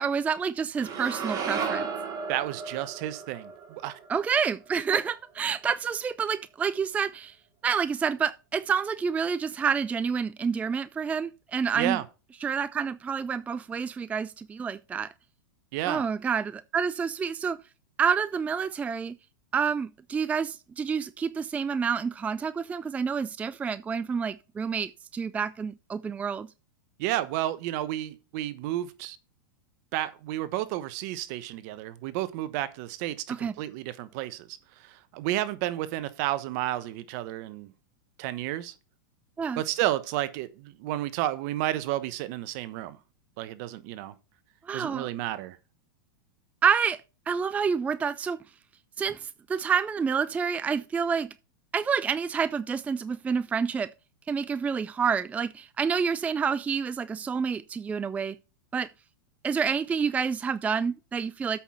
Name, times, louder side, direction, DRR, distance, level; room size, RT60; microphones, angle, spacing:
voice 1, 0.0-1.9 4.1-7.4 7.6-12.0 12.4-15.1 15.9-17.6 18.0-19.2 19.5-26.5 33.3-33.5 39.4-39.6 44.7-45.1 46.6-47.0 47.3-48.4 49.0-51.3 51.7-53.9 54.3-58.4 58.7-58.9 59.4-61.6, right 6 dB, 15° right, 0.4 m, -28 dB
sound 1, 0.8-5.0, right 5 dB, 35° right, 2.8 m, -34 dB
voice 2, 2.3-4.0 11.8-12.0 15.7-16.0 27.0-29.2 29.9-37.7 38.2-38.7 39.6-43.0 43.4-44.1 44.7-45.6, right 14 dB, 55° right, 1.1 m, -31 dB
8.2 x 5.9 x 5.8 m
hypercardioid pair, 120°, 11 cm